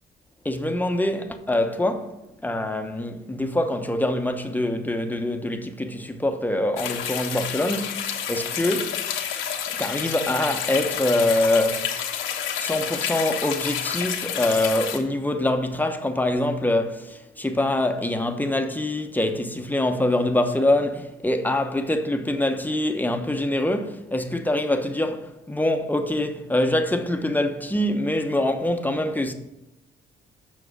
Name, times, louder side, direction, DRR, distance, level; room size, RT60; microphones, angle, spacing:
voice 1, 0.4-9.0 9.7-11.9 12.6-29.3, left 1 dB, 10° left, 1.0 m, -24 dB
sound 1, 6.8-15.0, left 8 dB, 85° left, 1.3 m, -29 dB
7.6 x 6.0 x 6.5 m
cardioid pair, 90°, 20 cm